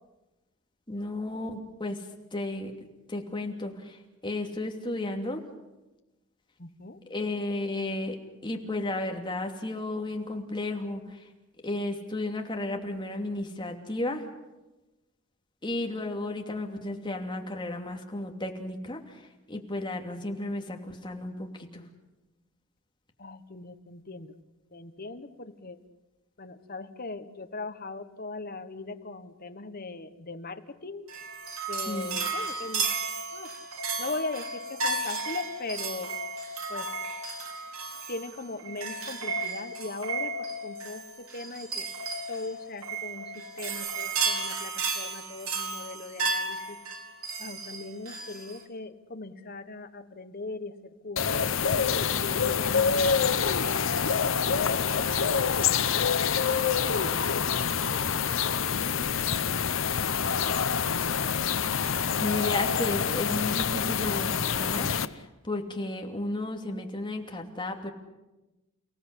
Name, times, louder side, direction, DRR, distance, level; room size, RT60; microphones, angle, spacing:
voice 1, 0.9-2.0 2.3-2.7 3.1-4.0 4.2-5.4 7.1-8.2 8.4-11.2 11.6-14.2 15.6-19.0 19.5-21.8 31.9-32.1 62.2-67.9, left 2 dB, 20° left, 3 dB, 2.8 m, -33 dB
voice 2, 6.6-7.0 23.2-24.3 24.7-25.8 26.4-31.0 31.7-32.9 33.3-33.5 34.0-36.1 36.7-36.9 38.1-41.0 41.3-41.8 42.3-46.8 47.4-50.7 51.0-51.4 52.1-53.3 53.6-56.6 56.9-58.6, left 3 dB, 45° left, 9 dB, 1.5 m, -40 dB
sound 1, 31.1-48.6, right 3 dB, 80° right, 3.7 m, -33 dB
sound 2, 51.2-65.1, left 6 dB, 65° left, 0.9 m, -26 dB
30.0 x 17.0 x 8.3 m, 1.1 s
head